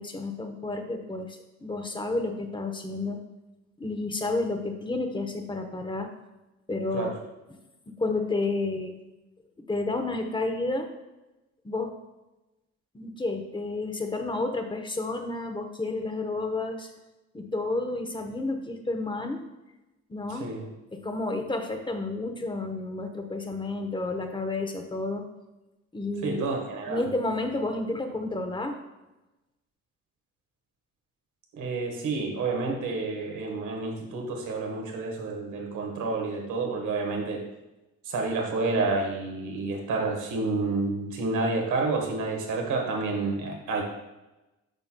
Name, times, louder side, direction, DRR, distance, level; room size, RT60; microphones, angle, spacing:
voice 1, 0.0-3.2 3.8-6.1 6.7-7.1 7.5-7.6 7.9-9.0 9.6-10.9 11.6-11.9 12.9-16.9 17.3-19.4 20.1-20.5 20.9-25.2 25.9-26.4 26.9-28.8, left 2 dB, 15° left, 5 dB, 0.9 m, -31 dB
voice 2, 26.2-27.0 31.5-37.4 38.0-43.8, right 3 dB, 80° right, 2 dB, 1.5 m, -29 dB
8.9 x 5.9 x 2.3 m, 1.0 s
cardioid pair, 90°, 30 cm